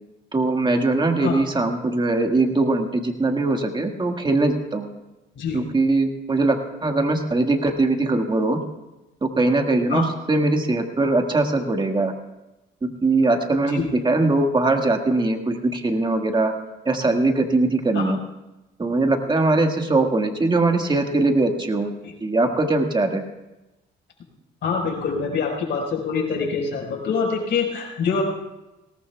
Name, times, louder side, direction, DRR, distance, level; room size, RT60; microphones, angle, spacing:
voice 1, 0.3-4.9 5.5-8.6 9.2-12.1 12.8-16.5 16.8-18.2 18.8-21.9 22.2-23.2, right 2 dB, 25° right, 4 dB, 1.8 m, -21 dB
voice 2, 24.6-28.2, left 5 dB, 65° left, -1 dB, 4.8 m, -25 dB
21.0 x 18.0 x 2.3 m, 0.99 s
cardioid pair, 90°, 20 cm